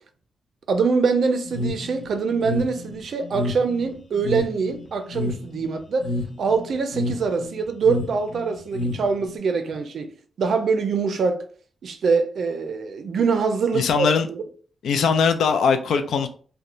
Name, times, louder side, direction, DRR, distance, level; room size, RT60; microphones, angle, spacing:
voice 1, 0.7-11.4 11.8-14.4, right 5 dB, 70° right, 0.4 m, -24 dB
sound 1, 1.5-9.4, left 1 dB, 55° left, 0.7 m, -30 dB
voice 2, 13.7-14.3 14.8-16.3, left 6 dB, 90° left, 0.3 m, -20 dB
2.9 x 2.1 x 2.4 m
cardioid pair, 90°, 0 cm